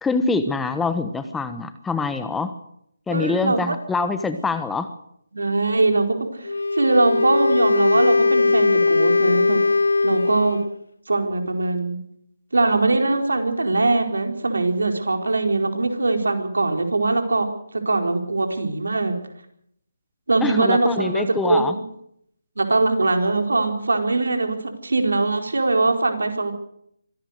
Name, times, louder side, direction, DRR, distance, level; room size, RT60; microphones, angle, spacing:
voice 1, 0.0-2.5 3.1-4.9 20.4-21.7, left 4 dB, 5° left, 10 dB, 1.2 m, -24 dB
voice 2, 3.1-3.7 5.3-9.6 10.0-10.6 11.1-12.0 12.5-17.5 17.7-19.2 20.3-21.6 22.6-26.5, right 2 dB, 75° right, 4 dB, 4.5 m, -21 dB
Wind instrument woodwind instrument, 6.4-10.8, left 3 dB, 75° left, 1.0 m, -20 dB
25.0 x 17.0 x 6.7 m, 0.71 s
figure-of-eight pair, 150°, 0 cm